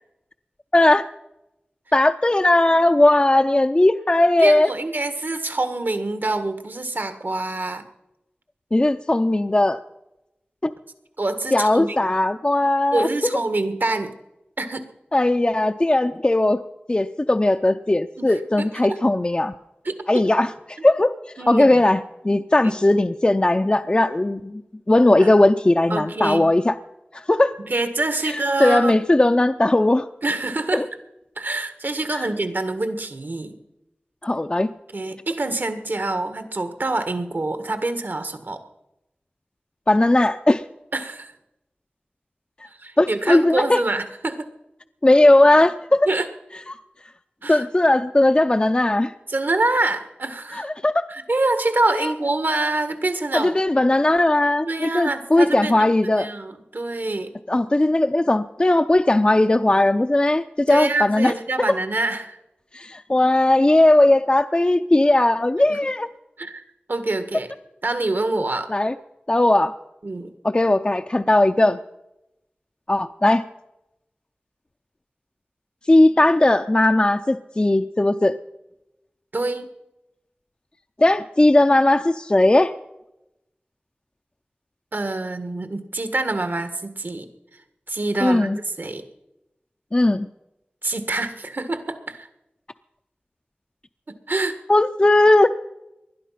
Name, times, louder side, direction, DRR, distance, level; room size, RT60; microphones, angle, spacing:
voice 1, 0.7-1.0 1.9-4.7 8.7-9.8 10.6-10.7 11.5-13.1 15.1-16.6 16.9-19.5 20.1-21.1 21.5-24.6 24.9-26.8 27.1-27.6 28.2-30.1 30.7-30.8 32.1-32.3 34.2-34.7 39.9-40.6 43.0-43.8 45.0-46.1 46.7-46.8 47.5-49.1 50.5-51.0 51.9-52.1 53.3-56.3 57.5-61.3 62.7-66.1 68.7-68.9 69.3-69.7 70.4-71.8 72.9-73.4 75.9-78.4 81.0-82.7 88.2-88.6 89.9-90.3 94.7-95.6, left 1 dB, 30° left, 7 dB, 0.5 m, -18 dB
voice 2, 4.4-7.8 11.2-12.1 12.9-14.1 14.6-14.9 18.2-18.4 18.8-19.0 19.8-19.9 21.4-21.8 25.2-25.3 25.9-26.5 27.7-29.0 30.2-30.8 31.4-33.6 34.9-38.6 40.9-41.3 42.7-44.5 46.0-46.3 47.4-47.6 49.3-50.7 51.1-53.5 54.6-55.9 56.2-57.3 60.7-62.4 65.7-65.8 66.4-66.6 66.9-67.5 67.8-68.7 70.0-70.3 79.3-79.7 84.9-87.3 87.9-89.0 90.8-92.3 94.3-94.6, right 2 dB, 65° right, 9 dB, 1.6 m, -26 dB
20.0 x 12.0 x 5.8 m, 0.91 s
wide cardioid pair, 70°, 4 cm